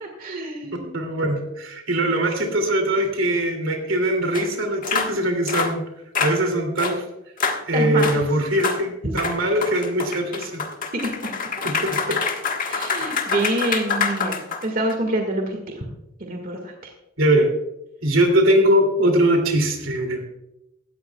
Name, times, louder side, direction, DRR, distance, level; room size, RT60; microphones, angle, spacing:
voice 1, 0.0-0.9 7.7-8.3 9.0-9.1 10.9-11.7 12.7-15.8 16.2-16.9, right 1 dB, 45° right, 3 dB, 1.8 m, -27 dB
voice 2, 0.9-5.8 6.2-7.0 7.7-10.6 11.6-12.2 17.2-17.5 18.0-20.2, right 1 dB, 75° right, 4 dB, 2.7 m, -21 dB
sound 1, 4.3-4.4 4.8-5.1 5.5-5.7 6.1-6.4 6.8-7.0 7.4-7.6 8.0-8.2 8.6-8.8 9.2-14.9, left 5 dB, 45° left, 1.5 m, -26 dB
17.0 x 13.5 x 2.3 m, 0.89 s
head